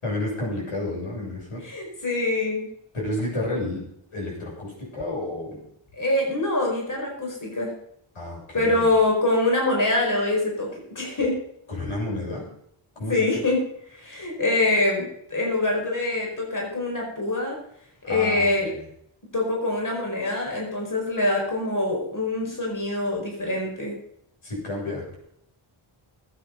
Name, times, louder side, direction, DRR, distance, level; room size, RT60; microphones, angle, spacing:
voice 1, 0.0-1.6 2.9-3.8 4.1-5.6 8.1-8.9 11.7-12.5 13.0-13.3 18.0-18.9 24.4-25.2, left 1 dB, 85° left, -3 dB, 7.3 m, -31 dB
voice 2, 1.6-2.7 6.0-7.7 8.5-11.4 13.1-13.6 13.9-17.6 18.0-18.7 19.3-23.9, left 2 dB, 40° left, -1 dB, 4.9 m, -24 dB
19.0 x 8.9 x 5.3 m, 0.72 s
wide cardioid pair, 115°, 49 cm